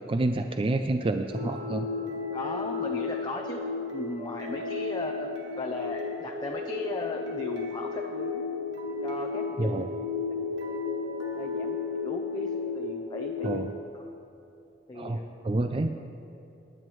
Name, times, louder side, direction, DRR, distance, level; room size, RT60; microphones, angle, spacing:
voice 1, 0.1-1.9 9.6-9.9 13.4-13.7 14.9-15.9, right 2 dB, 30° right, 7 dB, 0.3 m, -28 dB
sound 1, 1.3-13.6, left 4 dB, 90° right, 1.6 m, -33 dB
voice 2, 2.3-3.6 3.9-5.3 5.6-8.4 9.0-9.8 11.4-11.8 12.0-13.6 13.9-14.0 14.9-15.2, left 2 dB, 25° left, 1 dB, 0.6 m, -36 dB
19.5 x 9.8 x 3.1 m, 2.7 s
head